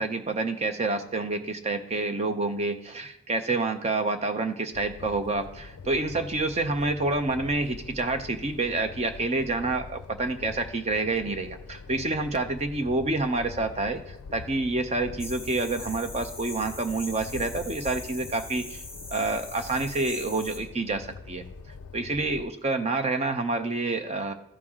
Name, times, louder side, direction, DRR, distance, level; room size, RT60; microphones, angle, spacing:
voice 1, 0.0-18.8 19.1-21.4 21.9-24.3, right 3 dB, 30° right, 7 dB, 0.6 m, -28 dB
sound 1, 4.7-22.5, left 4 dB, 85° left, 0.4 m, -44 dB
sound 2, 15.2-20.6, left 2 dB, 5° right, 2.4 m, -42 dB
13.5 x 4.7 x 3.6 m, 0.76 s
head